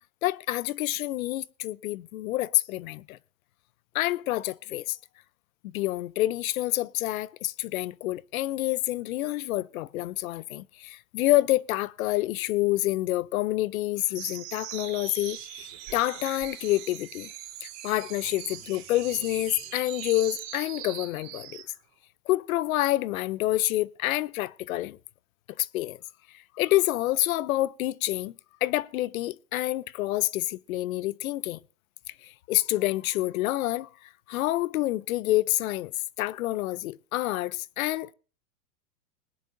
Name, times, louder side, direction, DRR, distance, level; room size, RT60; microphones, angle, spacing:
voice 1, 0.2-3.2 3.9-5.0 5.6-17.3 17.6-21.6 22.3-25.0 25.6-26.0 26.5-28.3 28.6-31.6 32.2-35.9 36.2-38.1, left 16 dB, 65° left, 0.7 m, -28 dB
sound 1, 14.1-21.7, right 12 dB, 35° right, 3.5 m, -41 dB
20.5 x 10.5 x 2.6 m
supercardioid pair, 150°, 45 cm